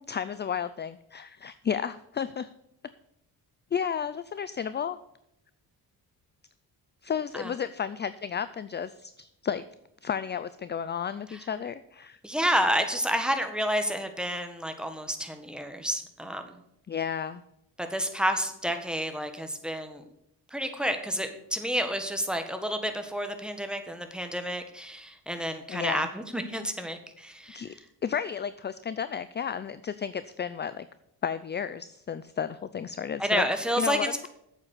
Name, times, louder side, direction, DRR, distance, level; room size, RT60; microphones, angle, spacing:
voice 1, 0.0-2.5 3.7-5.0 7.0-9.6 10.0-12.2 16.9-17.4 25.7-26.1 27.5-27.7 28.0-30.9 31.2-33.5 33.8-34.3, left 7 dB, 30° left, 14 dB, 0.4 m, -32 dB
voice 2, 12.2-16.6 17.8-20.0 20.5-27.8 33.2-34.3, equal, ahead, 6 dB, 1.5 m, -30 dB
8.6 x 7.5 x 8.3 m, 0.79 s
cardioid pair, 105°, 39 cm